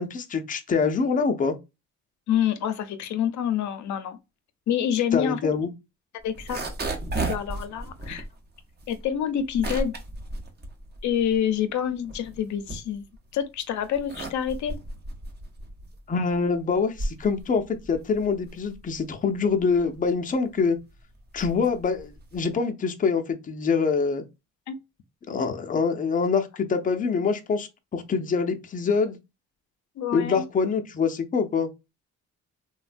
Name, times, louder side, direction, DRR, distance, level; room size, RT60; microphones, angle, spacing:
voice 1, 0.0-1.5 5.1-5.7 16.1-20.8 21.3-24.2 25.3-29.2 30.1-31.7, left 5 dB, 25° left, 0.5 m, -25 dB
voice 2, 2.3-4.2 4.7-5.4 6.2-6.6 7.2-8.2 8.9-9.9 11.0-13.1 13.3-14.8 24.7-24.8 30.0-30.4, left 9 dB, 70° left, 0.5 m, -27 dB
sound 1, 6.2-11.5 11.9-13.3 13.8-22.6, right 2 dB, 35° right, 0.7 m, -35 dB
3.1 x 2.1 x 2.5 m
cardioid pair, 90°, 30 cm